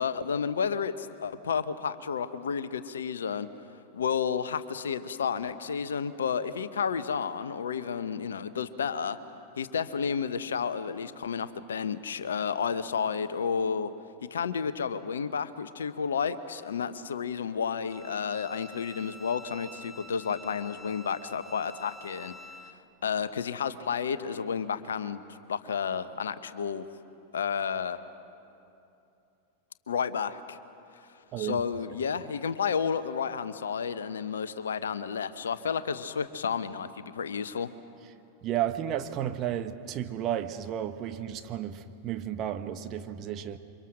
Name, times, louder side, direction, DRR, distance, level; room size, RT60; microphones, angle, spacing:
voice 1, 0.0-3.5 3.9-9.2 9.6-13.9 14.3-22.3 23.0-25.2 25.5-26.9 27.3-28.0 29.9-30.6 31.4-37.7, left 6 dB, 65° left, 13 dB, 1.0 m, -31 dB
Bowed string instrument, 17.8-22.8, left 1 dB, ahead, 1.1 m, -48 dB
voice 2, 31.3-31.6 38.4-43.6, right 11 dB, 35° right, 8 dB, 1.3 m, -32 dB
28.5 x 25.0 x 6.4 m, 2.7 s
figure-of-eight pair, 90°, 0 cm